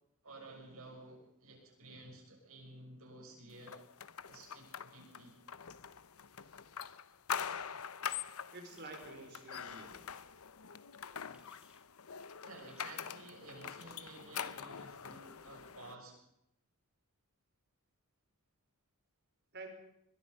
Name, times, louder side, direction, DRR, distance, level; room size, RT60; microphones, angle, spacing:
voice 1, 0.2-3.8 4.3-5.4 12.4-16.2, right 2 dB, 70° right, 2 dB, 7.1 m, -53 dB
sound 1, 3.7-15.9, left 7 dB, 75° left, 0.9 m, -44 dB
voice 2, 8.5-10.1 19.5-19.7, right 3 dB, 50° right, 3 dB, 5.0 m, -49 dB
sound 2, 8.8-9.3 10.1-10.3 11.3-11.8 12.6-13.1, right 1 dB, 5° right, 1.9 m, -67 dB
22.5 x 22.0 x 5.5 m, 0.82 s
head